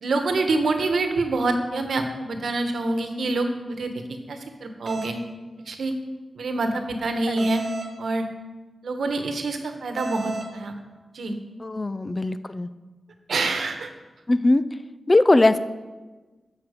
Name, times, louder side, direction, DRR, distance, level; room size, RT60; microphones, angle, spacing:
voice 1, 0.0-5.2 5.7-6.0 6.3-7.6 8.0-8.3 8.8-10.8 11.1-11.3 13.3-13.9, right 2 dB, 75° right, 6 dB, 1.2 m, -26 dB
sound 1, 4.9-5.1 7.4-7.9 10.0-10.5, right 3 dB, 45° right, 1.3 m, -33 dB
voice 2, 11.6-12.7 14.3-14.6 15.1-15.6, left 2 dB, 25° left, 13 dB, 0.4 m, -20 dB
13.0 x 5.9 x 5.1 m, 1.3 s
wide cardioid pair, 80°, 0 cm